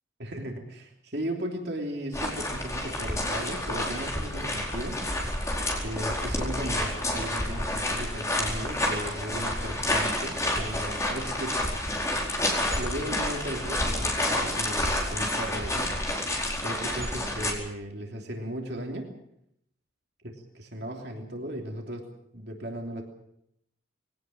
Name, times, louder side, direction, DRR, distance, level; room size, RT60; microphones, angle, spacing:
voice 1, 0.2-5.0 5.8-11.6 12.7-16.0 16.6-19.1 20.7-22.0 22.3-23.0, right 1 dB, 60° right, 1 dB, 3.2 m, -36 dB
sound 1, 2.1-17.5, left 1 dB, 15° left, 4.6 m, -29 dB
22.0 x 18.0 x 7.6 m, 0.77 s
head